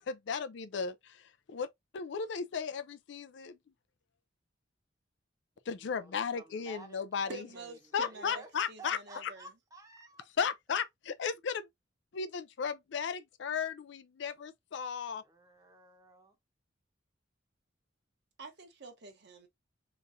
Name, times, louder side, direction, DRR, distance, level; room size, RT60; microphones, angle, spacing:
voice 1, 0.0-1.7 1.9-3.6 5.7-7.5 7.9-9.3 10.4-11.7 12.1-15.2, left 6 dB, 65° left, 0.4 m, -35 dB
voice 2, 5.7-8.5 8.8-10.3 15.2-16.4, right 2 dB, 20° right, 0.8 m, -53 dB
voice 3, 7.3-8.4 8.7-9.5 18.4-19.5, right 3 dB, 60° right, 1.0 m, -47 dB
3.5 x 3.0 x 2.6 m
head